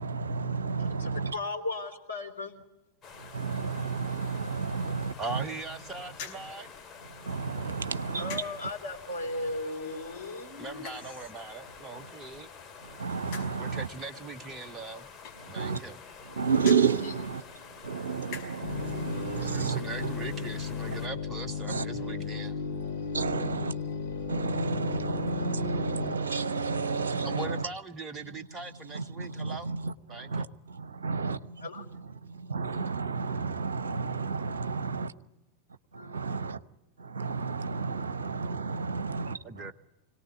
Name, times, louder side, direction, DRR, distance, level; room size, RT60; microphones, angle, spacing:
voice 1, 0.0-1.4 3.1-5.4 7.1-8.7 11.9-12.1 12.8-13.9 15.4-15.8 16.2-20.1 20.9-21.0 21.7-21.8 22.8-23.7 24.1-27.7 28.9-31.4 32.4-35.1 35.9-36.6 37.0-39.7, right 5 dB, 70° right, 15 dB, 0.9 m, -31 dB
voice 2, 1.0-2.5 8.2-10.9 31.6-31.7 35.9-36.2, left 2 dB, 85° left, 0 dB, 3.6 m, -36 dB
sound 1, 3.0-21.1, left 6 dB, 25° left, 2.7 m, -48 dB
voice 3, 5.2-6.7 10.6-12.5 13.5-15.1 15.5-16.0 19.4-22.6 27.2-29.7 30.1-30.5 39.4-39.7, right 3 dB, 20° right, 9 dB, 0.9 m, -40 dB
sound 2, 6.1-18.9, left 6 dB, 45° left, 5.1 m, -50 dB
sound 3, 18.6-26.2, left 5 dB, 65° left, 4.3 m, -35 dB
25.5 x 18.0 x 9.8 m, 1.0 s
figure-of-eight pair, 90°, 0 cm